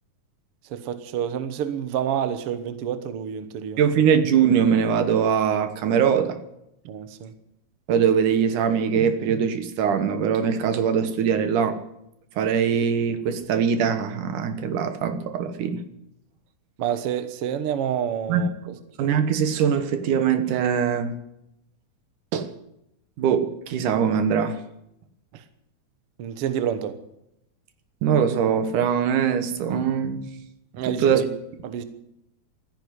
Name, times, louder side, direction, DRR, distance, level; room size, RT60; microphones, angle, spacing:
voice 1, 0.7-3.8 6.8-7.3 16.8-18.8 25.3-25.4 26.2-26.9 30.8-31.3 31.6-31.8, right 9 dB, 60° right, 11 dB, 1.8 m, -28 dB
voice 2, 3.8-6.4 7.9-11.8 12.4-15.8 18.3-18.4 19.0-21.1 22.3-22.5 23.2-24.6 28.0-30.2 30.9-31.2, right 7 dB, 85° right, 9 dB, 2.8 m, -22 dB
14.0 x 10.5 x 9.5 m, 0.81 s
omnidirectional pair, 3.5 m